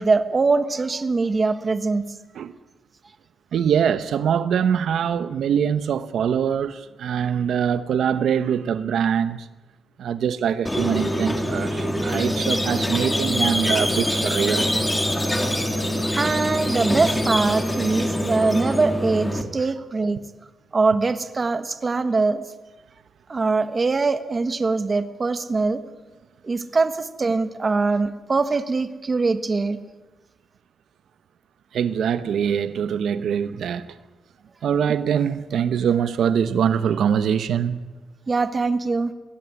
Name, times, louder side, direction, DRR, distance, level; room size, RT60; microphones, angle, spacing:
voice 1, 0.0-2.1 16.2-20.2 20.7-22.4 23.3-25.8 26.4-29.8 38.3-39.1, right 3 dB, 25° right, 1.3 m, -22 dB
voice 2, 3.5-9.5 10.0-14.7 31.7-33.9 34.6-37.8, right 8 dB, 75° right, 0.9 m, -23 dB
Squeak, 10.7-19.4, equal, 10° left, 2.3 m, -24 dB
22.0 x 17.0 x 9.5 m
wide cardioid pair, 155°, 0 cm